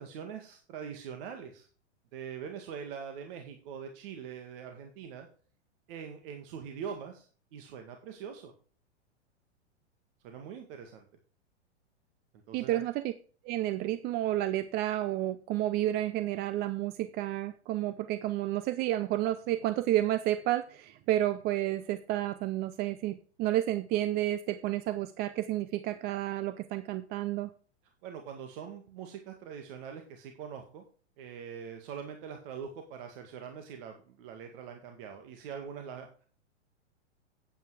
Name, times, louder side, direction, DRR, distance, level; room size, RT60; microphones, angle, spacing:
voice 1, 0.0-1.7 2.1-5.3 5.9-8.5 10.2-11.1 12.5-12.8 28.0-30.8 31.2-36.3, right 7 dB, 50° right, 5 dB, 2.0 m, -43 dB
voice 2, 12.5-13.1 13.4-27.5, right 14 dB, 30° right, 13 dB, 0.6 m, -31 dB
9.1 x 8.9 x 4.8 m, 0.42 s
hypercardioid pair, 120°, 35 cm